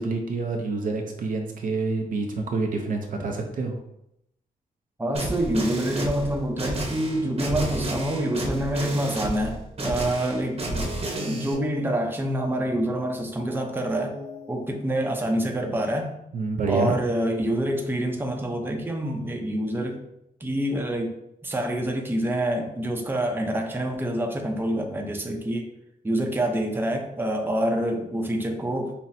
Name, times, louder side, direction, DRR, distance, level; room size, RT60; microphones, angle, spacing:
voice 1, 0.0-3.8 16.3-17.0, right 3 dB, 65° right, 2 dB, 0.5 m, -27 dB
voice 2, 5.0-10.9 11.2-14.1 14.5-16.1 16.7-20.0 20.4-21.1 21.4-25.7 26.0-28.9, right 1 dB, 15° right, 2 dB, 0.6 m, -26 dB
sound 1, 5.1-11.5, right 1 dB, 40° right, 0.9 m, -31 dB
sound 2, 7.9-15.6, left 2 dB, 75° left, 1.3 m, -45 dB
5.6 x 2.0 x 2.6 m, 0.80 s
cardioid pair, 90°, 15 cm